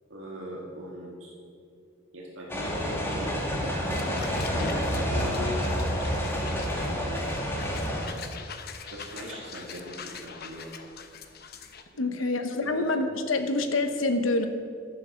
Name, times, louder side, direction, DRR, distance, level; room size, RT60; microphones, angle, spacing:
voice 1, 0.1-1.3 2.1-5.7 6.3-7.7 8.9-10.7 11.9-12.1 12.5-12.8, equal, 85° right, -3 dB, 1.7 m, -39 dB
sound 1, 2.5-8.1, equal, 10° left, 1.9 m, -29 dB
sound 2, 3.9-11.8, left 6 dB, 50° left, 0.9 m, -43 dB
voice 2, 12.0-14.5, left 2 dB, 90° left, 7 dB, 1.0 m, -26 dB
11.5 x 8.1 x 6.4 m, 2.4 s
head